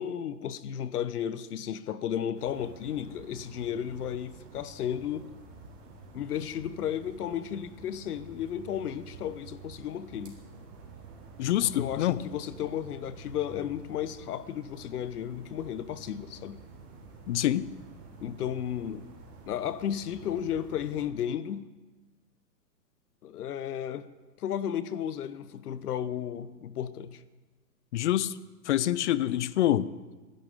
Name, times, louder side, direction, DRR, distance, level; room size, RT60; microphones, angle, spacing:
voice 1, 0.0-5.3 6.1-10.3 11.6-16.6 18.2-19.0 19.5-21.7 23.2-24.1 24.4-27.2, left 9 dB, 65° left, 1.1 m, -34 dB
sound 1, 2.3-21.1, right 3 dB, 40° right, 3.6 m, -49 dB
voice 2, 11.4-12.2 17.3-17.7 27.9-28.3 28.7-29.9, left 13 dB, 45° left, 0.6 m, -26 dB
26.5 x 11.0 x 3.7 m
hypercardioid pair, 135°, 49 cm